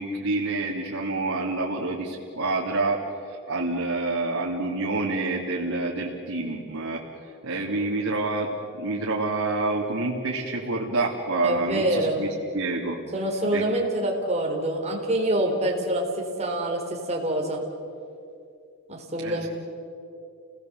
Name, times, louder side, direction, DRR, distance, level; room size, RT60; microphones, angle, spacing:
voice 1, 0.0-7.0 7.4-8.5 8.8-12.3 12.5-13.0 13.5-13.6 19.2-19.5, right 2 dB, 90° right, -4 dB, 2.8 m, -27 dB
voice 2, 11.4-12.2 13.1-16.8 17.1-17.6 18.9-19.5, right 1 dB, 30° right, 0 dB, 4.0 m, -26 dB
30.0 x 19.0 x 8.0 m, 2.6 s
head